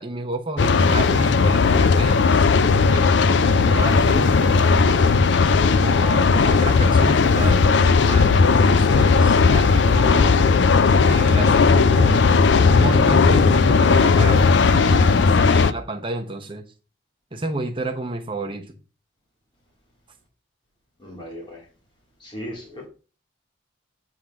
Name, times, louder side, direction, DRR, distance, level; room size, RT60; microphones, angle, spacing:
voice 1, 0.0-3.0 3.4-5.0 5.7-10.4 11.0-16.6 17.3-18.7, right 2 dB, 25° right, 1.0 m, -31 dB
sound 1, 0.6-15.7, left 4 dB, 55° left, 0.4 m, -16 dB
voice 2, 21.0-21.7 22.2-22.9, equal, 25° left, 2.3 m, -37 dB
8.0 x 3.8 x 5.8 m
head